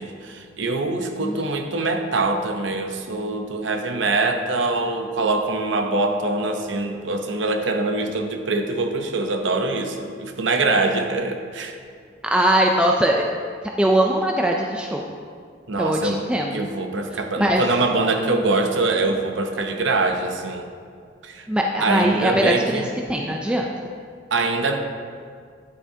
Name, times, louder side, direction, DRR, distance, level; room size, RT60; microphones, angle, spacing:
voice 1, 0.0-11.8 15.7-16.3 16.5-20.7 21.2-21.5 21.8-22.9 24.3-24.8, right 3 dB, 80° right, 5 dB, 0.7 m, -24 dB
voice 2, 12.2-13.2 13.8-15.1 15.8-16.6 17.4-17.6 21.5-23.7, right 1 dB, 5° right, 0 dB, 0.3 m, -21 dB
9.8 x 8.4 x 2.8 m, 2.1 s
head